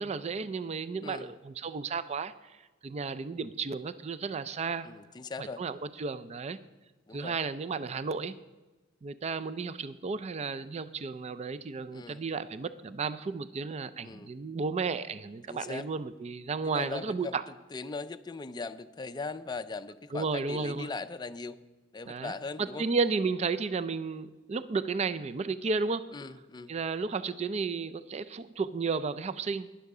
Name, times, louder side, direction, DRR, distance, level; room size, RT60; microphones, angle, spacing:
voice 1, 0.0-2.6 2.8-4.9 5.4-6.6 7.1-8.4 9.0-17.4 20.1-20.9 22.1-22.3 22.6-26.1 26.7-29.7, right 4 dB, 35° right, 13 dB, 0.4 m, -33 dB
voice 2, 1.0-1.3 4.8-5.6 7.1-7.4 11.9-12.3 14.0-14.3 15.5-15.9 16.6-17.3 17.7-21.6 21.9-22.9 26.1-26.7, left 3 dB, 20° left, 9 dB, 0.4 m, -39 dB
12.0 x 10.5 x 4.8 m, 1.2 s
head